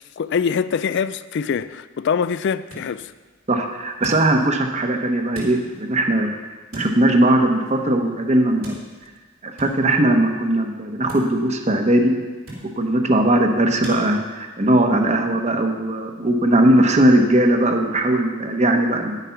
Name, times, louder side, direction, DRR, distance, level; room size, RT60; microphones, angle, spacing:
voice 1, 0.2-3.1, left 6 dB, 60° left, 0.4 m, -23 dB
sound 1, 2.4-14.0, right 1 dB, 85° right, 4.3 m, -43 dB
voice 2, 3.5-6.3 6.7-8.8 9.4-12.1 12.8-19.2, right 1 dB, 35° right, 1.0 m, -19 dB
10.5 x 8.2 x 5.8 m
head